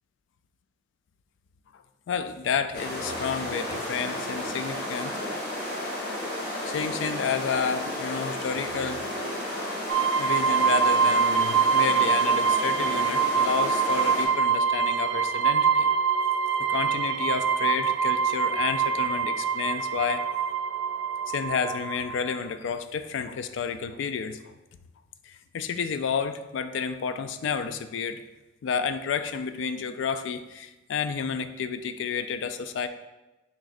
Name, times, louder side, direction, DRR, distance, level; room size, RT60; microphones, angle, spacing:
voice 1, 2.1-5.2 6.6-9.0 10.1-15.9 16.7-20.3 21.3-24.5 25.3-28.2 28.6-32.9, left 6 dB, 80° left, 10 dB, 0.3 m, -30 dB
sound 1, 2.7-14.3, left 1 dB, 50° left, 1.0 m, -33 dB
sound 2, 9.9-22.4, right 6 dB, 85° right, 0.4 m, -24 dB
6.1 x 3.0 x 2.5 m, 1.1 s
head